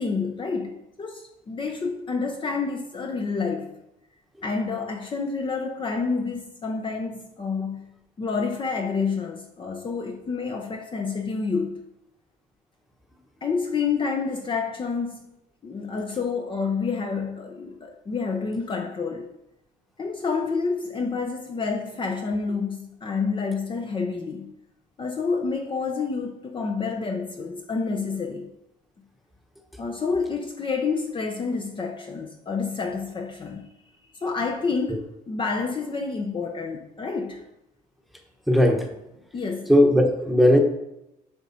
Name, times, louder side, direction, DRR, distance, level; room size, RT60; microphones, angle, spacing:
voice 1, 0.0-3.7 4.4-7.9 8.2-11.8 13.4-15.3 15.6-19.3 20.0-24.5 25.0-28.5 29.8-33.7 34.1-37.4 39.3-39.7, left 4 dB, 30° left, 0.8 m, -28 dB
voice 2, 38.5-38.9 39.7-40.6, equal, ahead, 1.1 m, -17 dB
8.1 x 4.9 x 4.2 m
cardioid pair, 110°, 17 cm